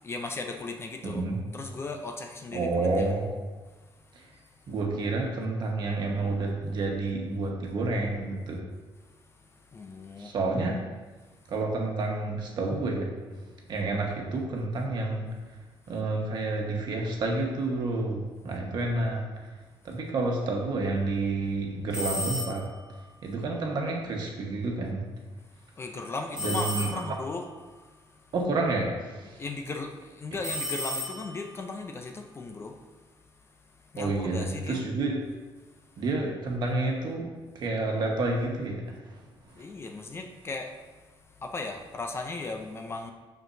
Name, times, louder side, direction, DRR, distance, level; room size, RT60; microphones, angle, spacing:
voice 1, 0.0-1.2 1.5-3.1 9.7-10.3 25.8-27.4 29.4-32.8 33.9-34.9 39.6-40.7 41.4-43.1, left 3 dB, 25° left, 4 dB, 0.5 m, -36 dB
voice 2, 1.0-1.4 2.5-3.3 4.1-4.3 4.7-8.6 10.2-10.8 11.5-13.1 13.7-15.3 15.9-19.3 19.8-22.7 23.2-25.1 26.4-27.0 28.3-29.4 34.0-35.2 36.0-37.3 37.5-39.2, right 2 dB, 50° right, 0 dB, 1.3 m, -29 dB
sound 1, 21.9-22.8 26.4-27.3 30.4-31.6, left 1 dB, 10° right, 1.8 m, -34 dB
12.5 x 4.5 x 2.7 m, 1.3 s
cardioid pair, 155°, 9 cm